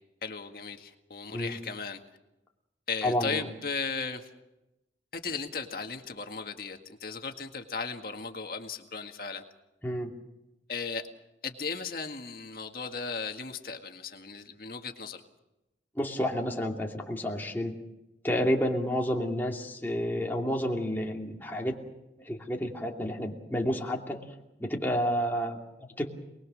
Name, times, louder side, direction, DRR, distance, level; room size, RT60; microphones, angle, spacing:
voice 1, 0.2-2.0 2.9-4.3 5.1-9.4 10.7-11.0 11.4-15.2, left 5 dB, 55° left, 4 dB, 1.9 m, -36 dB
voice 2, 3.0-3.5 9.8-10.1 15.9-17.8 18.2-21.8 22.2-24.3 24.6-26.1, equal, 10° left, -1 dB, 2.7 m, -30 dB
27.5 x 20.5 x 6.4 m, 0.93 s
head